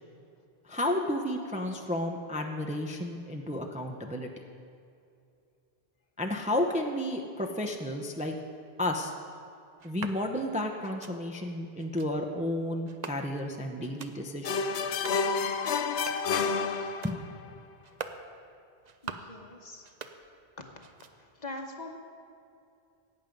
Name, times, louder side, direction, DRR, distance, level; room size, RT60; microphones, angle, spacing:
voice 1, 0.7-4.3 6.2-8.3 8.8-9.1 9.8-14.5 17.0-17.1, left 1 dB, 10° right, 2 dB, 0.6 m, -32 dB
sound 1, 9.8-10.2 10.8-11.2 11.8-12.1 12.9-13.5 13.8-14.2 14.8-15.3 15.8-16.4 16.8-17.2 17.8-18.2 18.8-19.4 19.8-20.5 20.8-21.4, right 5 dB, 45° right, 0.6 m, -44 dB
sound 2, 14.4-17.4, left 5 dB, 80° left, 0.9 m, -29 dB
voice 2, 19.0-19.9 20.2-20.7 21.1-22.0, left 2 dB, 40° left, 3 dB, 1.1 m, -43 dB
16.5 x 8.9 x 5.2 m, 2.5 s
omnidirectional pair, 1.1 m